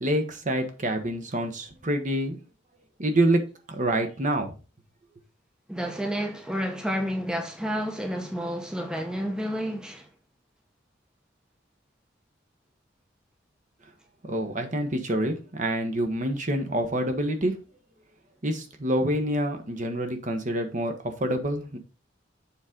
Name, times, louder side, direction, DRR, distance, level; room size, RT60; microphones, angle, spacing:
voice 1, 0.0-2.4 3.0-3.4 3.7-4.5 14.3-17.6 18.4-21.8, right 1 dB, 40° right, 1.2 m, -27 dB
voice 2, 5.7-10.1, equal, 5° right, 0.8 m, -30 dB
7.1 x 3.8 x 5.2 m
head